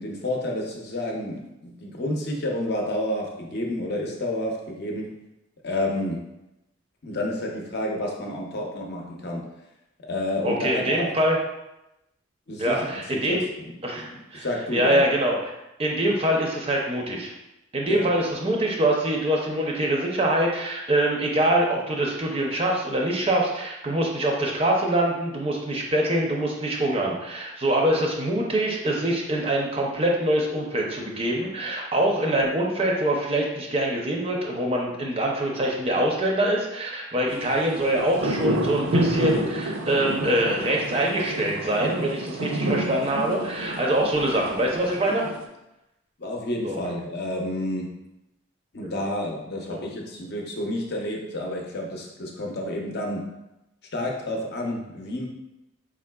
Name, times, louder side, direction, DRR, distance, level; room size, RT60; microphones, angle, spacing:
voice 1, 0.0-5.1 5.6-6.2 7.0-9.5 10.0-11.1 12.5-13.7 14.0-14.1 14.3-15.0 17.9-18.1 46.2-47.9 48.7-53.3 53.9-55.3, left 1 dB, 50° left, 0 dB, 0.6 m, -30 dB
voice 2, 10.4-11.4 12.6-13.4 13.8-14.5 14.7-17.3 17.7-45.2 46.6-46.8 48.8-49.1 49.7-49.8, right 1 dB, 30° right, -1 dB, 0.5 m, -24 dB
sound 1, 37.4-45.4, right 1 dB, 75° right, 0.5 m, -29 dB
4.7 x 3.7 x 2.2 m, 0.92 s
head